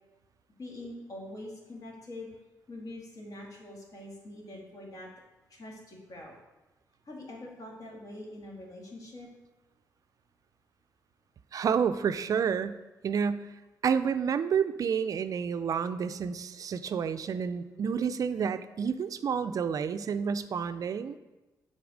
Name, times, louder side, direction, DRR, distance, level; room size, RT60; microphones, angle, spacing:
voice 1, 0.6-2.3 2.7-5.1 5.5-6.4 7.1-9.3, left 1 dB, 55° left, -2 dB, 2.0 m, -44 dB
voice 2, 11.5-12.8 13.0-13.5 13.8-21.2, right 7 dB, 55° right, 11 dB, 0.3 m, -29 dB
6.9 x 4.0 x 5.0 m, 1.1 s
cardioid pair, 65°, 7 cm